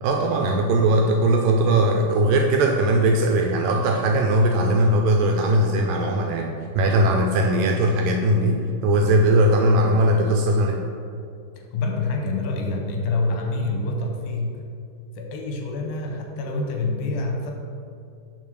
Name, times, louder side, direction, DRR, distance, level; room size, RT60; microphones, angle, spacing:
voice 1, 0.0-10.8, right 1 dB, 80° right, 2 dB, 2.0 m, -19 dB
voice 2, 11.7-14.6 15.2-17.5, left 3 dB, 85° left, 2 dB, 2.6 m, -26 dB
5.5 x 4.8 x 6.3 m, 2.4 s
omnidirectional pair, 4.2 m